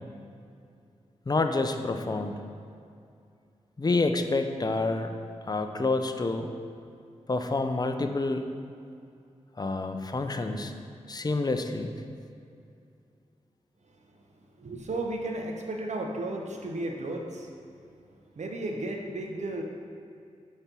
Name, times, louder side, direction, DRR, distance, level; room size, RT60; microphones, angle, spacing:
voice 1, 1.3-2.4 3.8-5.1 5.5-6.5 7.3-8.4 9.6-10.7 11.1-11.9, left 3 dB, 30° left, 6 dB, 0.5 m, -28 dB
voice 2, 14.6-17.5 18.4-19.6, right 2 dB, 65° right, 2 dB, 0.8 m, -34 dB
5.2 x 4.2 x 6.0 m, 2.4 s
cardioid pair, 50°, 13 cm